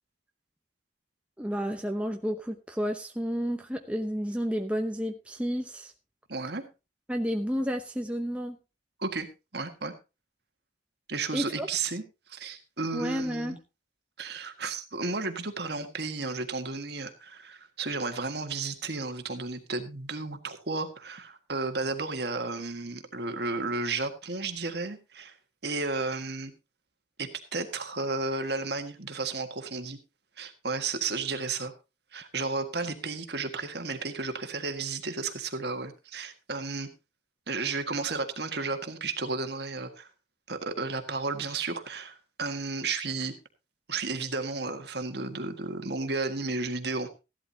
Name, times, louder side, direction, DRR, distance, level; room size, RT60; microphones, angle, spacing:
voice 1, 1.4-5.9 7.1-8.6 11.3-11.7 12.9-13.6, equal, 5° right, 3 dB, 0.9 m, -31 dB
voice 2, 6.3-6.7 9.0-9.3 9.5-9.9 11.1-12.0 12.3-13.6 14.2-25.3 25.6-26.5 27.2-30.0 30.4-31.7 32.1-36.9 37.5-40.1 40.5-43.4 43.9-47.1, right 3 dB, 55° right, 7 dB, 1.7 m, -33 dB
15.5 x 11.5 x 2.8 m, 0.28 s
head